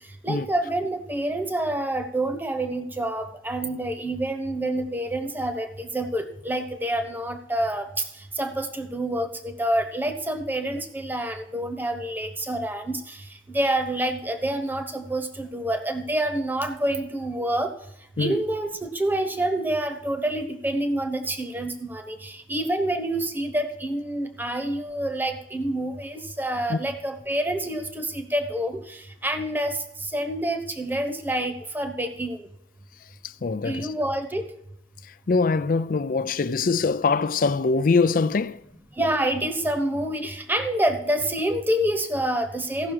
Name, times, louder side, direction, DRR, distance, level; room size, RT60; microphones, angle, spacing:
voice 1, 0.2-8.0 8.3-17.7 18.2-32.5 33.6-34.5 39.0-42.9, right 1 dB, 10° right, 1.0 m, -27 dB
voice 2, 33.4-33.9 35.3-38.6, left 4 dB, 50° left, 0.4 m, -23 dB
16.0 x 6.1 x 4.7 m
head